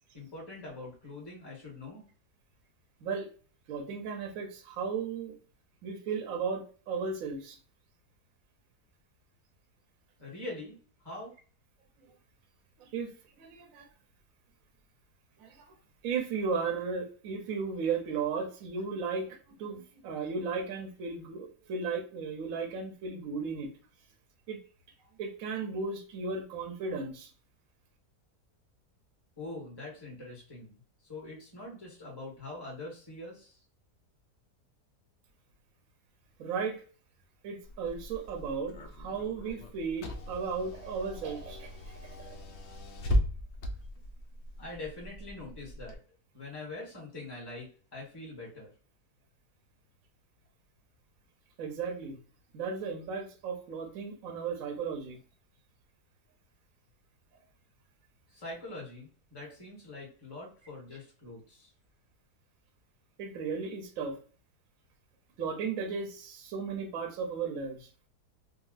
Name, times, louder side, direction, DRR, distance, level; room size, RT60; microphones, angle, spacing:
voice 1, 0.1-2.1 10.2-11.3 29.4-30.8 31.0-33.6 44.6-46.0 46.3-48.7 58.3-61.7, left 2 dB, 15° left, -3 dB, 1.3 m, -44 dB
voice 2, 3.7-5.4 5.8-7.6 12.8-13.1 13.4-13.9 15.4-15.7 16.0-23.7 24.5-24.6 25.2-27.3 36.4-36.8 37.4-42.4 51.6-52.2 52.5-55.2 63.2-64.2 65.4-67.9, right 5 dB, 65° right, 2 dB, 1.0 m, -35 dB
Car / Engine, 37.6-45.9, equal, 85° left, 0.6 m, -37 dB
3.7 x 2.2 x 2.4 m, 0.41 s
omnidirectional pair, 1.8 m